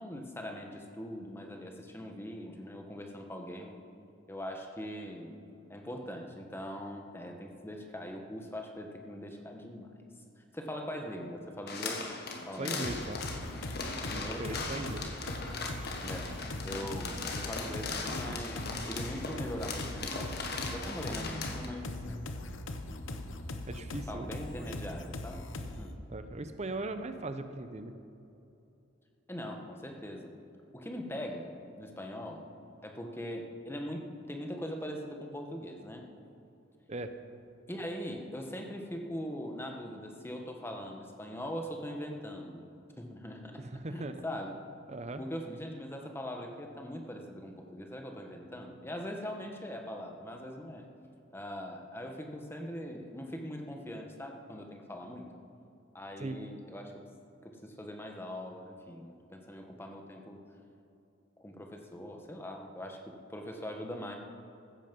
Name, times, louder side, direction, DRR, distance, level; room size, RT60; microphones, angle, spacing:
voice 1, 0.0-3.8 4.3-5.3 5.7-9.9 10.4-12.1 12.5-13.0 14.1-14.6 16.0-16.3 16.6-20.3 20.7-22.2 22.9-23.0 24.1-26.0 29.3-30.3 30.7-32.4 32.8-36.1 37.7-42.6 43.0-43.6 43.9-44.5 45.2-50.9 51.3-55.3 55.9-56.9 57.4-60.4 61.4-64.2, equal, 10° left, 2 dB, 1.4 m, -41 dB
sound 1, 11.7-21.7, left 3 dB, 55° left, 1.6 m, -39 dB
voice 2, 12.6-13.2 14.1-15.1 23.7-24.3 26.1-27.9 36.9-37.2 41.9-42.0 43.6-44.2 44.9-45.2 56.2-56.4, right 2 dB, 35° right, 9 dB, 0.7 m, -39 dB
sound 2, 12.8-25.9, left 1 dB, 75° left, 1.0 m, -40 dB
15.5 x 13.5 x 5.4 m, 2.8 s
head